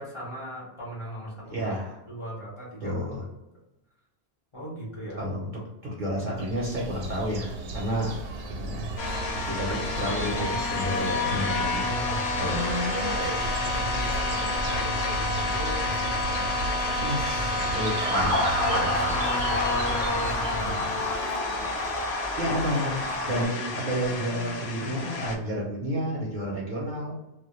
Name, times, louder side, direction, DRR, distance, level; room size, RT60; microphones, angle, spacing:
voice 1, 0.0-1.7 2.1-3.1 4.5-5.2 9.7-9.9 11.8-16.6 17.1-18.1 18.5-20.9 23.2-23.4 23.6-24.0, equal, 30° left, -7 dB, 0.8 m, -37 dB
voice 2, 1.5-2.0 2.8-3.2 5.2-5.5 5.8-8.2 8.6-8.9 9.5-11.9 12.4-12.6 17.0-18.4 22.4-23.0 23.3-27.1, equal, 55° right, -4 dB, 0.7 m, -30 dB
sound 1, 6.3-21.2, right 2 dB, 75° right, 0.9 m, -35 dB
sound 2, 9.0-25.4, left 2 dB, 70° left, 0.8 m, -30 dB
Motor vehicle (road) / Siren, 18.1-23.4, left 1 dB, 5° left, 0.5 m, -29 dB
2.2 x 2.1 x 3.0 m, 0.93 s
omnidirectional pair, 1.2 m